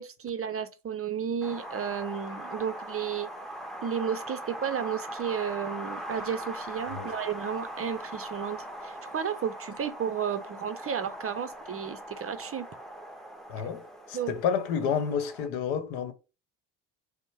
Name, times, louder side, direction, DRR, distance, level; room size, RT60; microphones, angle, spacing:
voice 1, 0.0-3.3 3.8-12.7 14.1-14.3, right 8 dB, 30° right, 0.6 m, -33 dB
Wind, 1.4-15.5, right 1 dB, ahead, 0.8 m, -41 dB
voice 2, 13.5-16.1, left 7 dB, 70° left, 1.0 m, -30 dB
5.1 x 2.2 x 4.7 m
hypercardioid pair, 70°, 49 cm